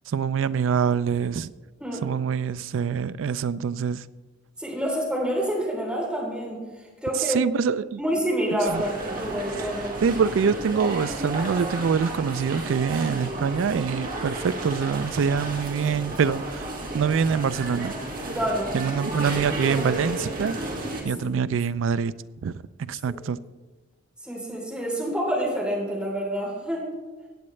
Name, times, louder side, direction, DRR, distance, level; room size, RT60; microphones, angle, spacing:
voice 1, 0.1-1.5 2.0-4.0 7.2-8.0 8.7-8.8 10.0-16.6 16.9-18.0 18.7-20.6 21.0-22.1 22.4-22.5 22.8-23.4, right 6 dB, 75° right, 0.4 m, -25 dB
voice 2, 4.6-6.6 7.0-7.4 8.0-9.9 18.3-18.8 23.1-23.2 24.2-26.9, equal, 5° right, 3.2 m, -27 dB
sound 1, 8.6-21.0, right 2 dB, 45° right, 1.9 m, -32 dB
17.0 x 8.6 x 3.2 m
head